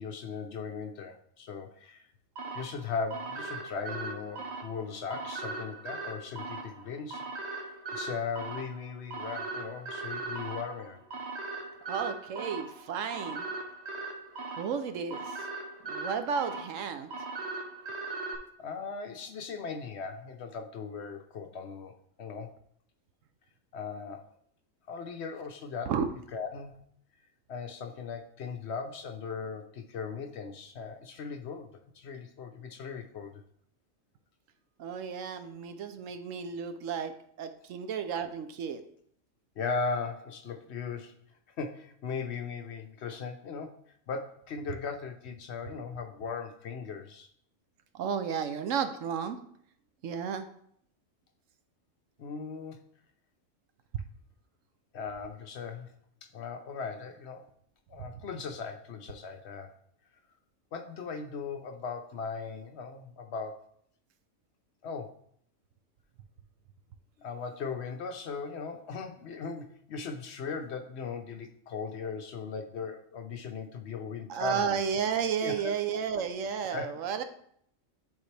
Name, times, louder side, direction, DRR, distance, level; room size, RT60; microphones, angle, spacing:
voice 1, 0.0-2.0 2.5-7.2 7.5-11.0 18.6-22.5 23.7-24.3 24.9-25.9 26.3-26.8 27.5-33.4 39.6-41.1 41.6-43.8 44.1-47.3 52.2-52.9 54.9-55.9 56.2-57.4 57.9-59.7 60.7-63.7 64.8-65.2 67.2-74.8 75.4-76.0 76.7-76.9, left 5 dB, 60° left, 5 dB, 0.9 m, -38 dB
sound 1, 2.4-18.4, right 3 dB, 60° right, 1.2 m, -39 dB
voice 2, 11.9-13.4 14.6-15.5 15.9-17.1 25.9-26.0 34.8-37.1 37.4-38.8 47.9-49.4 50.0-50.4 58.1-58.2 74.3-77.2, right 7 dB, 80° right, 9 dB, 1.0 m, -32 dB
10.5 x 3.8 x 3.3 m, 0.66 s
omnidirectional pair, 1.3 m